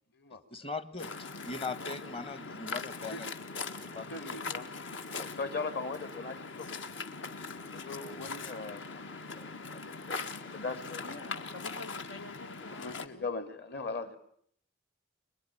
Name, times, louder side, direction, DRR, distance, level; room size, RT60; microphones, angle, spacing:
voice 1, 0.5-3.3 3.8-4.1, left 3 dB, 30° left, 15 dB, 1.2 m, -40 dB
Waves surf, 1.0-13.1, left 4 dB, 65° left, 1.7 m, -41 dB
voice 2, 4.1-4.7 5.0-6.8 7.7-11.0 12.7-14.2, left 3 dB, 50° left, 10 dB, 2.7 m, -40 dB
voice 3, 11.0-13.3, left 2 dB, 90° left, 7 dB, 2.0 m, -48 dB
24.5 x 22.0 x 9.9 m, 0.66 s
head